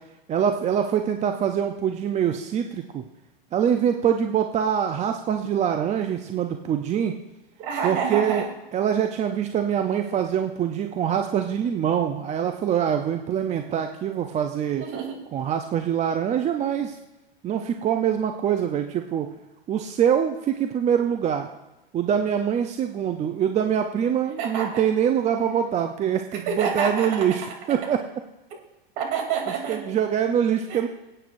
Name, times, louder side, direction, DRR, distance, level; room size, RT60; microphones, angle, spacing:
voice 1, 0.3-3.0 3.5-7.2 7.8-8.4 8.7-14.8 15.3-17.0 17.4-19.3 19.7-21.5 21.9-27.4 27.7-28.0 29.7-30.9, right 8 dB, 25° right, 5 dB, 0.6 m, -24 dB
voice 2, 7.6-8.4 14.8-15.2 24.4-24.7 26.3-27.3 28.5-28.6 29.0-30.0 30.7-30.8, right 6 dB, 50° right, 1 dB, 3.0 m, -28 dB
23.5 x 8.8 x 2.6 m, 1.0 s
hypercardioid pair, 105°, 30 cm